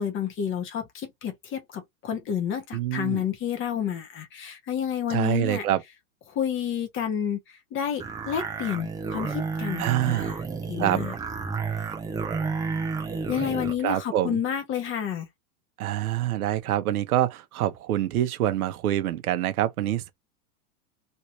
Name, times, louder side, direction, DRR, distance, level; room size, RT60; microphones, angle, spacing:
voice 1, 0.0-5.7 6.3-10.4 10.7-11.1 13.3-15.3, left 9 dB, 30° left, 1.0 m, -30 dB
voice 2, 2.7-3.2 5.1-5.8 9.8-10.4 10.8-11.0 13.8-14.4 15.8-20.1, right 13 dB, 80° right, 1.0 m, -26 dB
sound 1, 8.0-13.8, right 4 dB, 10° right, 0.5 m, -31 dB
3.2 x 2.8 x 3.0 m
supercardioid pair, 135°, 44 cm